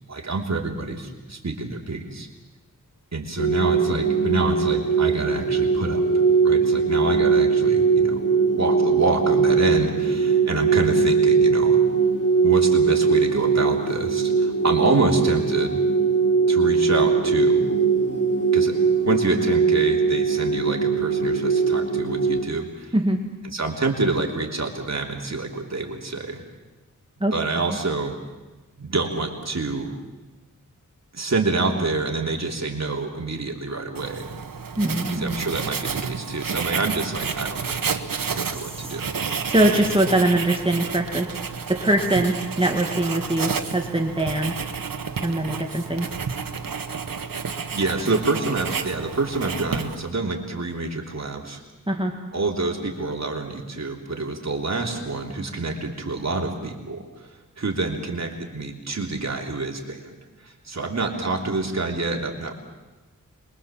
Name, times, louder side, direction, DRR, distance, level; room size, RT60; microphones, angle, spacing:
voice 1, 0.1-2.3 3.1-6.0 6.4-8.2 8.6-11.8 12.4-15.8 16.5-17.7 18.5-18.7 19.1-22.9 23.4-26.4 27.3-28.2 28.8-29.9 31.1-34.3 35.1-37.9 38.3-39.2 47.7-51.6 52.3-60.1 60.4-62.5, right 3 dB, 55° right, 1 dB, 3.3 m, -27 dB
sound 1, 3.4-22.4, right 5 dB, 65° left, 3.8 m, -20 dB
Writing, 33.9-50.2, right 5 dB, 80° right, 1.3 m, -30 dB
voice 2, 34.8-35.4 38.5-38.9 39.5-41.3 41.7-44.5 45.2-46.1 51.9-52.1, right 1 dB, 15° right, 2 dB, 2.0 m, -22 dB
26.5 x 22.5 x 7.4 m, 1.2 s
wide cardioid pair, 80°, 33 cm